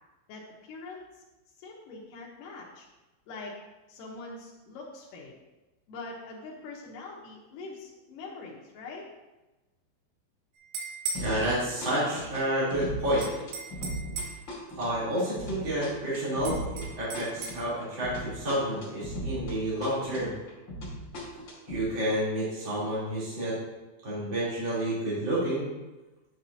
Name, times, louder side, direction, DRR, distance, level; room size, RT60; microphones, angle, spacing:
voice 1, 0.3-1.2 1.6-2.9 3.3-3.5 3.9-5.3 5.9-9.0, left 3 dB, 80° left, -2 dB, 1.9 m, -43 dB
sound 1, 10.6-11.3 13.2-14.5 16.5-17.6, right 4 dB, 85° right, 3.6 m, -36 dB
sound 2, 11.1-11.6 11.8-19.6 19.8-21.8, equal, 35° left, 2.0 m, -38 dB
voice 2, 11.2-13.3 14.8-20.3 21.7-23.5 24.0-25.7, right 1 dB, 30° right, -10 dB, 3.4 m, -29 dB
10.0 x 7.8 x 2.8 m, 1.1 s
omnidirectional pair, 5.4 m